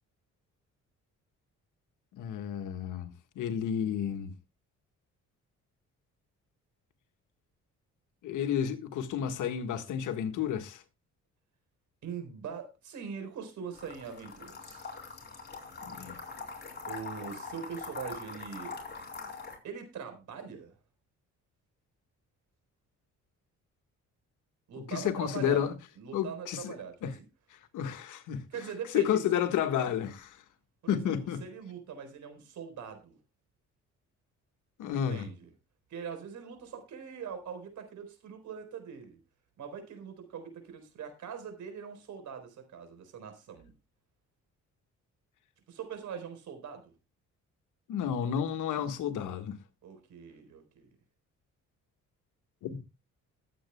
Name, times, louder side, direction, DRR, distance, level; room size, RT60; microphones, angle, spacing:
voice 1, 2.1-4.3 8.2-10.8 15.8-16.2 24.8-25.7 26.1-26.7 27.0-27.1 27.7-28.4 28.9-30.4 30.9-31.4 34.8-35.3 47.9-49.6 52.6-52.8, left 9 dB, 85° left, 1.6 m, -31 dB
voice 2, 12.0-14.9 16.9-18.8 19.6-20.7 24.7-25.7 26.0-26.9 28.5-29.2 30.8-33.2 34.9-35.5 35.9-39.2 39.6-43.7 45.7-46.9 49.8-50.9, right 7 dB, 75° right, 4.1 m, -42 dB
sound 1, 13.8-19.6, left 4 dB, 35° left, 4.2 m, -43 dB
20.5 x 8.2 x 2.2 m
cardioid pair, 90°, 30 cm